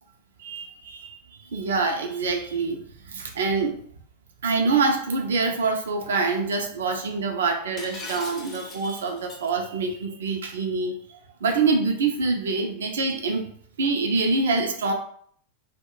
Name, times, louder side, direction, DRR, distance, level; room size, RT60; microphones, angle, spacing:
voice 1, 0.4-3.8 4.4-13.5 13.8-14.9, right 4 dB, 65° right, 3 dB, 0.5 m, -25 dB
Shatter, 7.8-9.5, left 3 dB, 30° left, 0.6 m, -40 dB
2.3 x 2.2 x 3.6 m, 0.62 s
figure-of-eight pair, 90°, 0 cm